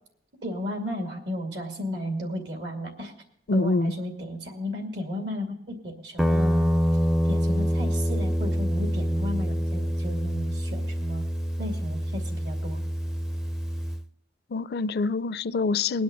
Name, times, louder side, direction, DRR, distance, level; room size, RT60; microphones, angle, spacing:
voice 1, 0.4-3.1 3.5-6.7 7.3-11.2 11.6-12.8, left 1 dB, 75° right, 3 dB, 2.3 m, -34 dB
voice 2, 3.5-3.9 14.5-16.0, left 3 dB, 60° left, 15 dB, 0.4 m, -25 dB
Guitar, 6.2-14.0, equal, 5° right, 0.4 m, -26 dB
19.5 x 10.5 x 3.8 m, 0.75 s
head